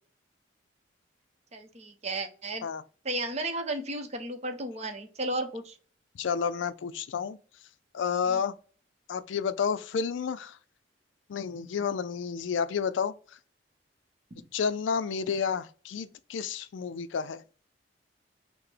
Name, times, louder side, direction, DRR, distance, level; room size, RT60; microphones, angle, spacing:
voice 1, 1.5-2.7 3.0-5.8 8.3-8.4, right 2 dB, 35° right, 0.7 m, -34 dB
voice 2, 6.1-7.4 7.9-8.5 9.1-10.6 11.3-13.1 14.5-17.4, left 6 dB, 80° left, 0.4 m, -30 dB
5.6 x 2.1 x 3.3 m
head